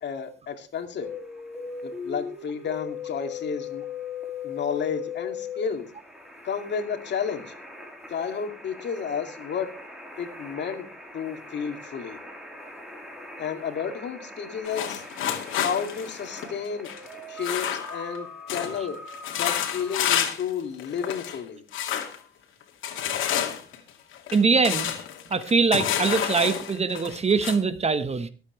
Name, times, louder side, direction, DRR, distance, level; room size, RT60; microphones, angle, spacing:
voice 1, 0.0-1.1 1.8-3.8 4.4-5.9 6.4-7.5 8.1-9.7 10.2-10.9 11.1-12.2 13.4-15.0 15.6-16.9 17.3-19.0 19.4-21.6, left 7 dB, 60° left, 6 dB, 2.4 m, -31 dB
sound 1, 1.0-20.2, left 5 dB, ahead, 3.8 m, -40 dB
sound 2, 14.7-18.2 18.5-18.8 19.1-20.5 20.8-21.4 21.7-22.2 22.8-27.6, left 10 dB, 85° left, 2.3 m, -29 dB
voice 2, 24.3-24.9 25.3-28.3, right 4 dB, 30° right, 11 dB, 1.3 m, -23 dB
24.0 x 8.4 x 3.2 m, 0.34 s
cardioid pair, 90°, 20 cm